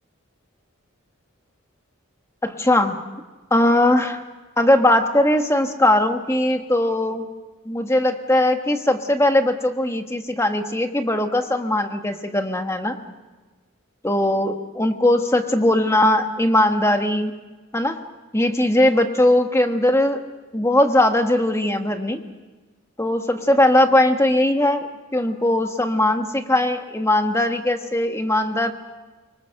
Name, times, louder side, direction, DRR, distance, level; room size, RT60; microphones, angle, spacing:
voice 1, 2.4-3.0 3.5-4.2 4.6-7.3 7.6-13.0 14.0-17.3 17.7-18.0 18.3-20.2 20.5-22.2 23.0-28.7, left 1 dB, 15° left, 6 dB, 1.4 m, -19 dB
24.5 x 23.5 x 6.6 m, 1.2 s
head